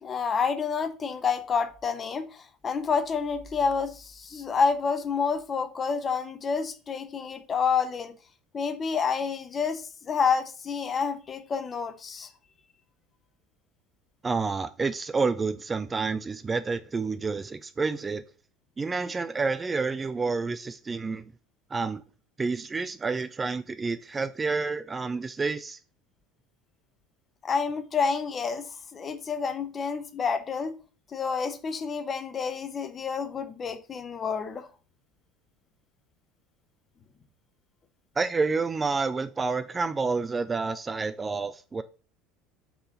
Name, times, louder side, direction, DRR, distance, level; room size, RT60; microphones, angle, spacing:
voice 1, 0.0-8.1 8.5-12.3 27.4-30.7 31.1-34.7, left 5 dB, 30° left, 0.9 m, -29 dB
voice 2, 14.2-18.2 18.8-21.2 21.7-22.0 22.4-25.8 38.2-41.8, right 4 dB, 20° right, 0.4 m, -29 dB
4.6 x 3.8 x 5.5 m
figure-of-eight pair, 70°, 0 cm